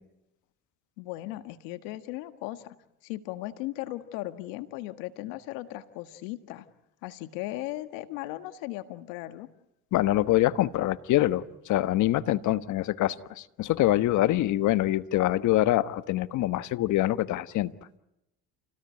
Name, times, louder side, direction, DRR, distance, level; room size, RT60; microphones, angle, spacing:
voice 1, 1.0-2.8 3.0-6.7 7.0-9.5, left 16 dB, 80° left, 10 dB, 1.7 m, -37 dB
voice 2, 9.9-17.7, left 15 dB, 65° left, 13 dB, 1.3 m, -25 dB
29.0 x 18.0 x 9.7 m, 0.87 s
supercardioid pair, 75°, 32 cm